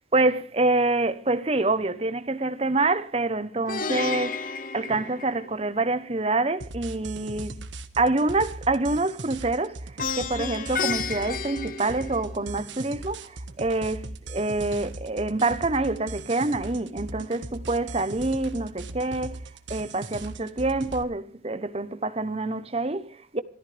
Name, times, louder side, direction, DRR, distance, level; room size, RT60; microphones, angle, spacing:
voice 1, 0.1-4.5 4.7-7.5 8.0-19.4 19.7-23.4, right 2 dB, 35° right, 1.0 m, -26 dB
Plucked string instrument, 3.7-5.8 10.0-12.6, left 5 dB, 45° left, 1.0 m, -32 dB
sound 1, 6.6-21.0, right 2 dB, 85° right, 1.5 m, -39 dB
26.5 x 13.5 x 3.5 m
head